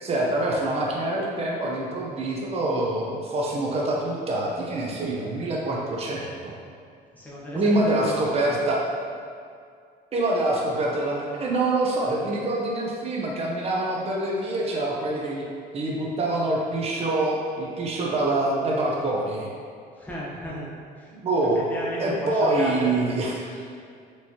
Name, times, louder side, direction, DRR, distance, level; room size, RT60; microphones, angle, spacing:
voice 1, 0.0-6.5 7.5-8.8 10.1-15.4 15.7-19.5 21.1-21.7 22.0-23.5, right 2 dB, 35° right, -3 dB, 0.7 m, -25 dB
voice 2, 7.1-8.4 19.9-20.7 20.9-21.1 21.5-22.9 23.5-23.8, left 1 dB, 10° left, -6 dB, 1.0 m, -34 dB
4.5 x 3.0 x 2.8 m, 2.3 s
cardioid pair, 110°, 17 cm